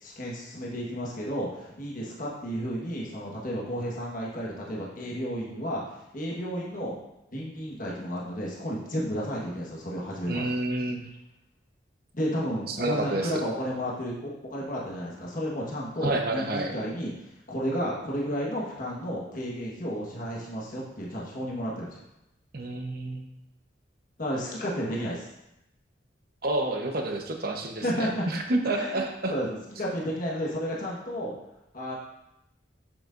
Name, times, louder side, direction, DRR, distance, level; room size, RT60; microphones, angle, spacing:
voice 1, 0.0-5.8 6.1-7.0 7.3-10.5 12.1-22.0 24.2-25.3 27.8-28.2 28.6-29.0 29.3-31.3 31.7-32.0, equal, 50° left, -4 dB, 1.4 m, -32 dB
voice 2, 10.3-11.0 12.7-13.3 16.0-16.8 22.5-23.2 26.4-29.3, right 2 dB, 55° right, 3 dB, 0.9 m, -29 dB
8.0 x 7.5 x 2.6 m, 0.87 s
head